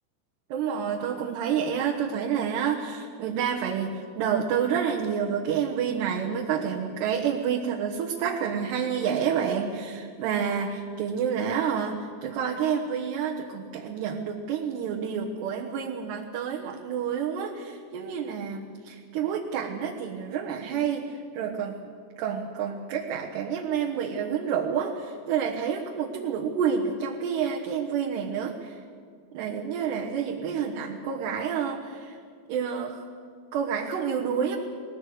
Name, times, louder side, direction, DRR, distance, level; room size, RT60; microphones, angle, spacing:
voice 1, 0.5-21.1 21.3-21.9 22.2-28.8 29.3-32.2 32.5-33.0 33.5-34.6, right 7 dB, 70° right, -1 dB, 3.3 m, -29 dB
21.0 x 20.0 x 8.0 m, 2.1 s
omnidirectional pair, 5.4 m